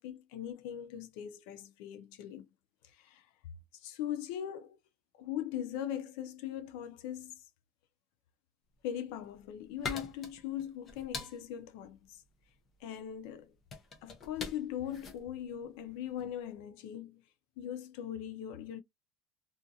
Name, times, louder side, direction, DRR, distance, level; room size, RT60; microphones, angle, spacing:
voice 1, 0.0-2.5 2.9-3.3 3.7-4.8 5.2-7.4 8.8-12.2 12.8-13.5 14.0-17.2 17.6-18.8, left 10 dB, 70° left, 0.4 m, -40 dB
sound 1, 9.0-16.4, left 4 dB, 25° left, 0.6 m, -45 dB
2.5 x 2.3 x 2.6 m
cardioid pair, 175°, 0 cm